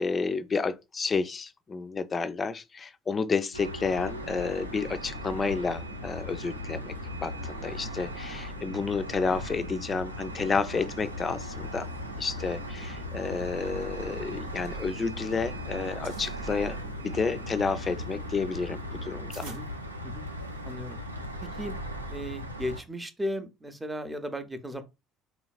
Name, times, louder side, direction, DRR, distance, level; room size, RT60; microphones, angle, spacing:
voice 1, 0.0-6.9 7.2-11.9 12.2-16.8 17.0-19.5, left 4 dB, 30° left, 0.4 m, -30 dB
sound 1, 3.5-22.8, equal, 85° right, 0.4 m, -38 dB
sound 2, 4.0-19.3, right 1 dB, 85° left, 0.6 m, -48 dB
sound 3, 14.5-15.5 15.7-16.4 17.0-20.6, right 4 dB, 70° right, 0.8 m, -51 dB
voice 2, 20.6-21.0 21.6-21.8 22.1-24.8, equal, 10° right, 0.6 m, -35 dB
3.8 x 2.8 x 2.3 m
figure-of-eight pair, 55°, 0 cm